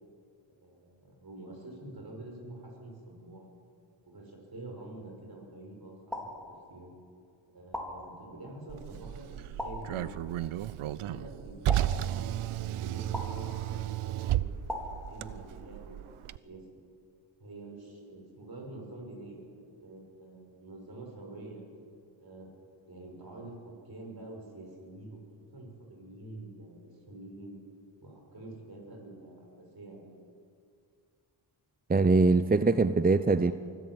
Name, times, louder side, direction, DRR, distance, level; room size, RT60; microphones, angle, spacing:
voice 1, 0.6-3.4 4.1-6.3 6.7-6.9 7.5-10.1 10.8-14.6 15.0-16.1 16.4-16.6 17.4-21.6 22.2-22.5 22.9-25.2 25.5-27.6 28.0-29.5 29.7-30.1, right 2 dB, 50° right, 1 dB, 6.5 m, -47 dB
sound 1, 6.1-7.0 7.7-8.6 9.6-10.4 11.7-12.6 13.1-13.9 14.7-15.7, left 1 dB, ahead, 4.4 m, -41 dB
Car, 8.7-16.4, right 12 dB, 85° right, 0.6 m, -33 dB
voice 2, 31.9-33.5, right 3 dB, 20° right, 12 dB, 0.6 m, -23 dB
24.5 x 15.5 x 8.0 m, 2.3 s
cardioid pair, 60°, 48 cm